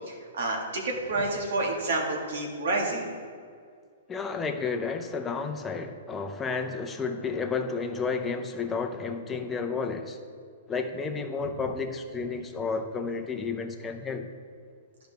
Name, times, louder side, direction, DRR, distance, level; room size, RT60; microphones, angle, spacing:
voice 1, 0.1-3.1, right 2 dB, 70° right, 0 dB, 1.9 m, -29 dB
voice 2, 4.1-10.2 10.7-14.3, left 4 dB, 15° left, 4 dB, 0.7 m, -31 dB
11.5 x 5.1 x 3.4 m, 2.1 s
hypercardioid pair, 125°, 0 cm